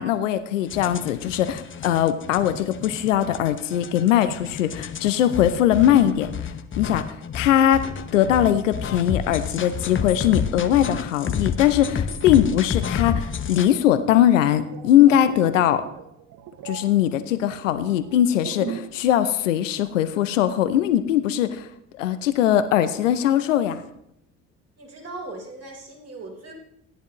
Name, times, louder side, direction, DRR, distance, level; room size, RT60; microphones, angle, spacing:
voice 1, 0.0-6.3 6.8-7.0 7.3-15.8 16.6-21.7 22.0-23.8, left 11 dB, 85° left, 12 dB, 0.6 m, -20 dB
sound 1, 0.7-13.7, left 7 dB, 35° left, 0.9 m, -30 dB
sound 2, 14.3-19.1 19.3-19.6, right 9 dB, 60° right, 0.8 m, -39 dB
voice 2, 24.8-26.5, right 2 dB, 40° right, 0 dB, 3.5 m, -38 dB
14.5 x 10.5 x 3.0 m, 0.75 s
hypercardioid pair, 50°, 37 cm